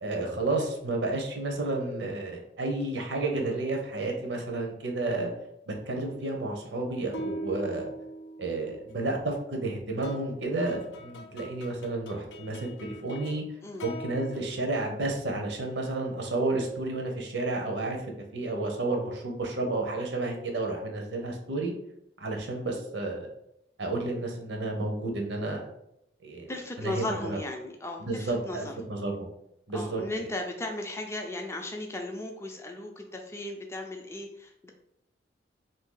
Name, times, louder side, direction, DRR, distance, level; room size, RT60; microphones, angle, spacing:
voice 1, 0.0-5.3 5.7-7.9 8.4-13.4 13.8-18.0 18.3-21.7 22.2-23.3 23.8-25.6 26.2-26.5 26.8-27.4 28.0-29.3 29.7-30.0, right 2 dB, 85° right, 2 dB, 0.7 m, -31 dB
sound 1, 3.3-4.0 7.1-9.1 10.0-13.4 13.7-14.5, equal, 85° left, 0.5 m, -42 dB
voice 2, 26.5-28.7 29.7-34.7, left 1 dB, 15° left, 2 dB, 0.3 m, -36 dB
2.6 x 2.6 x 3.7 m, 0.79 s
head